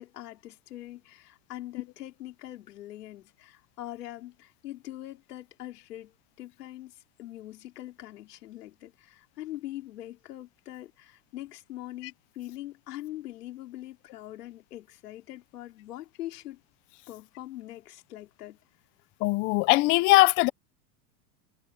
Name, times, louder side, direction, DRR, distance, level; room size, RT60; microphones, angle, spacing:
voice 1, 0.0-16.6 17.1-18.6, left 14 dB, 90° left, 4.2 m, -43 dB
voice 2, 19.2-20.5, left 21 dB, 30° left, 0.4 m, -20 dB
supercardioid pair, 140°, 45 cm